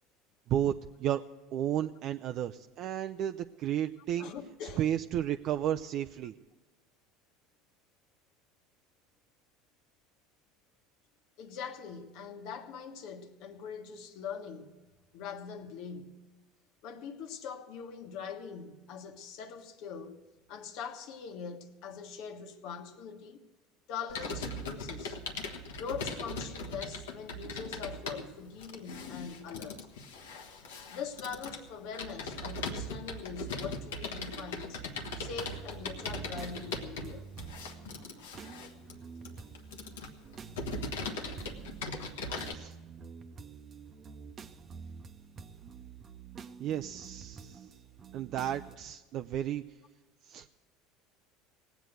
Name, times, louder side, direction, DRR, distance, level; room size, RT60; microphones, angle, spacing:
voice 1, 0.5-1.2 1.5-4.3 4.8-6.3 42.5-42.7 46.6-47.7 48.1-49.6 50.2-50.5, right 11 dB, 55° right, 0.4 m, -33 dB
voice 2, 4.2-4.8 11.4-14.8 15.1-16.2 16.8-20.2 20.5-23.4 23.9-25.2 25.8-29.8 30.9-34.9 35.2-37.3, left 6 dB, 65° left, 1.3 m, -42 dB
Computer keyboard, 24.1-42.5, left 2 dB, 90° left, 1.2 m, -39 dB
sound 1, 35.0-48.8, right 6 dB, 35° right, 0.8 m, -48 dB
18.0 x 8.1 x 7.7 m
hypercardioid pair, 90°, 0 cm